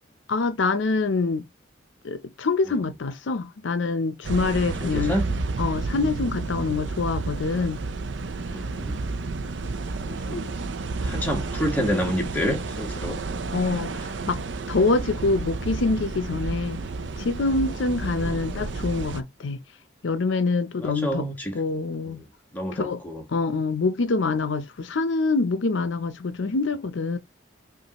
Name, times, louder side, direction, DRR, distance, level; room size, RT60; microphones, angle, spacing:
voice 1, 0.3-1.5 2.0-5.1 5.6-7.8 13.5-14.4 14.7-16.8 17.2-19.6 20.0-21.2 21.5-22.2 22.7-23.0 23.3-27.2, left 3 dB, 85° left, 0.6 m, -25 dB
sound 1, 4.2-19.2, right 3 dB, 80° right, 0.6 m, -31 dB
voice 2, 4.8-5.3 8.5-9.0 10.1-10.5 11.0-13.2 18.2-18.4 20.8-21.6 22.1-22.2 22.5-23.2, equal, 10° left, 1.4 m, -28 dB
5.3 x 2.5 x 2.9 m
head